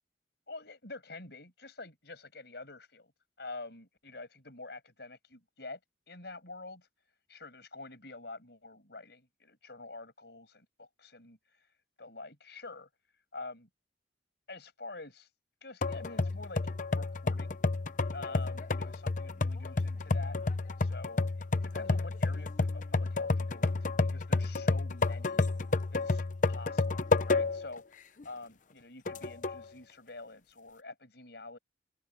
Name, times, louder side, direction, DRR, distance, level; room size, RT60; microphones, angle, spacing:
voice 1, 0.5-3.1 3.4-5.8 6.1-6.9 7.3-11.7 12.0-12.9 13.3-13.7 14.5-15.3 15.6-16.6 16.9-17.6 18.1-20.4 20.8-25.4 25.9-31.6, left 3 dB, 60° left, 6.3 m, -47 dB
sound 1, 15.8-27.7 28.2-28.3 29.1-29.6, left 3 dB, 45° left, 0.8 m, -30 dB
open air
head